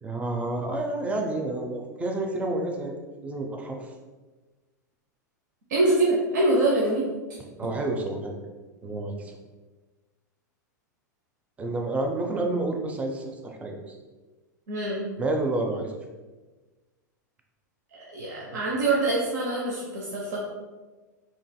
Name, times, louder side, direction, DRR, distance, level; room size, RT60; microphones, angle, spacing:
voice 1, 0.0-2.9 3.2-3.9 7.6-8.4 8.8-9.4 11.6-13.9 15.2-16.0, right 2 dB, 15° right, 2 dB, 0.4 m, -29 dB
voice 2, 5.7-7.1 14.7-15.0 17.9-20.4, right 2 dB, 65° right, -4 dB, 0.7 m, -24 dB
3.9 x 3.1 x 2.2 m, 1.3 s
figure-of-eight pair, 95°, 10 cm